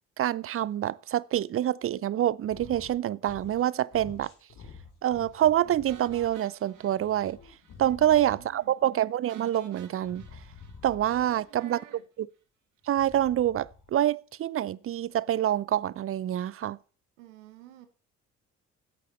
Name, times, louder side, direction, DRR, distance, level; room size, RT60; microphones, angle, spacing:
voice 1, 0.2-4.3 5.0-7.4 7.8-10.2 10.8-11.8 12.9-16.8, right 12 dB, 40° right, 0.5 m, -26 dB
sound 1, 2.4-3.0 3.2-3.7 3.9-6.3 6.7-8.6 10.0-11.4 12.8-13.9, left 5 dB, 60° left, 2.7 m, -49 dB
sound 2, 5.9-7.8 8.0-8.2 8.5-8.6 9.3-11.6, right 6 dB, 55° right, 1.8 m, -53 dB
voice 2, 7.8-8.8 11.1-12.1 17.2-17.9, right 13 dB, 80° right, 1.2 m, -51 dB
13.5 x 8.4 x 4.2 m
hypercardioid pair, 45°, 37 cm